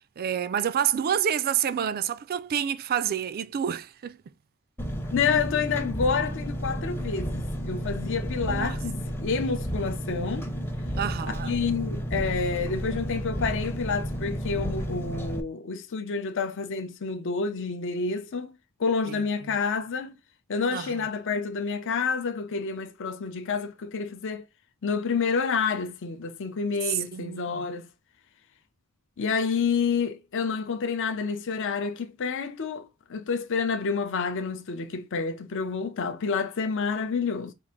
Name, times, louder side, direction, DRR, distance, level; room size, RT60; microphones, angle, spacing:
voice 1, 0.2-4.2 8.4-8.8 11.0-11.6 19.1-19.6 20.7-21.0 26.9-27.6, right 9 dB, 45° right, 0.3 m, -28 dB
Engine, 4.8-15.4, equal, 10° left, 0.6 m, -32 dB
voice 2, 5.1-10.5 11.4-18.5 18.8-20.1 20.5-24.4 24.8-27.9 29.2-37.5, left 5 dB, 55° left, 0.5 m, -29 dB
4.6 x 2.5 x 3.7 m
head